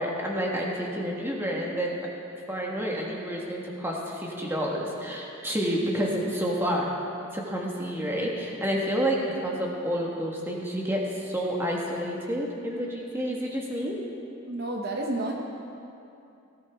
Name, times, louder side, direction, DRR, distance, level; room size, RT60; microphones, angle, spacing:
voice 1, 0.0-2.0 2.5-6.9 7.3-14.0, equal, 10° right, -2 dB, 1.4 m, -29 dB
voice 2, 14.5-15.3, right 2 dB, 45° right, 0 dB, 0.9 m, -30 dB
18.0 x 13.0 x 3.5 m, 2.7 s
head